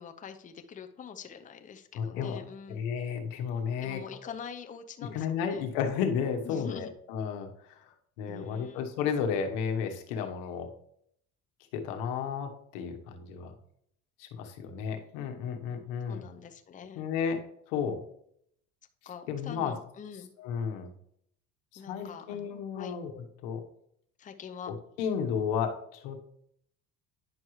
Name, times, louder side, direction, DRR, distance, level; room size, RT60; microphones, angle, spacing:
voice 1, 0.0-2.8 3.8-5.6 6.4-6.9 8.3-8.8 16.1-17.0 19.1-20.3 21.8-22.9 24.2-24.7, left 7 dB, 25° left, 7 dB, 0.6 m, -44 dB
voice 2, 2.0-2.4 2.7-4.0 5.1-7.8 8.2-10.7 11.7-13.5 14.2-16.3 16.9-18.0 19.3-19.7 20.4-20.9 21.7-23.6 24.7-26.2, left 7 dB, 85° left, 5 dB, 1.3 m, -33 dB
10.0 x 6.1 x 3.2 m, 0.71 s
cardioid pair, 115°, 32 cm